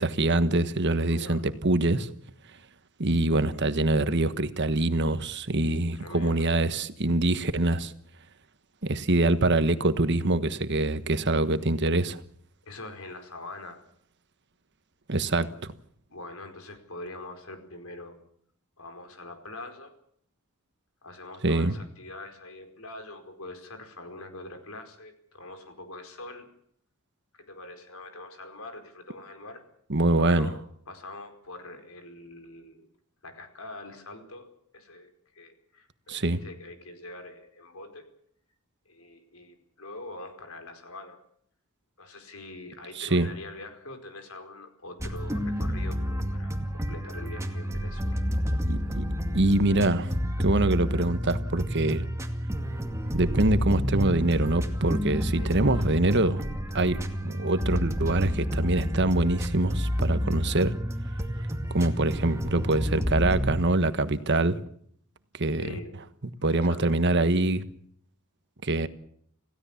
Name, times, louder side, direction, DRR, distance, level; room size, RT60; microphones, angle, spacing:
voice 1, 0.0-2.1 3.0-7.9 8.8-12.2 15.1-15.7 21.4-21.8 29.9-30.5 36.1-36.4 42.9-43.3 48.7-49.0 49.3-50.1 50.4-52.0 53.1-56.4 56.7-57.0 57.2-60.7 61.7-64.6 65.4-65.8 66.4-67.6 68.6-68.9, right 2 dB, 55° right, 11 dB, 1.4 m, -24 dB
voice 2, 1.1-1.4 5.9-6.5 12.6-13.8 16.1-18.2 18.8-19.9 21.0-26.5 27.4-29.7 30.2-32.9 33.2-38.1 38.8-41.2 42.0-48.2 55.4-55.7 61.4-61.5 65.6-66.0 66.5-66.9, left 2 dB, 70° left, 7 dB, 4.8 m, -44 dB
sound 1, 45.0-63.5, equal, 15° right, 2.3 m, -29 dB
27.5 x 16.5 x 7.3 m, 0.65 s
head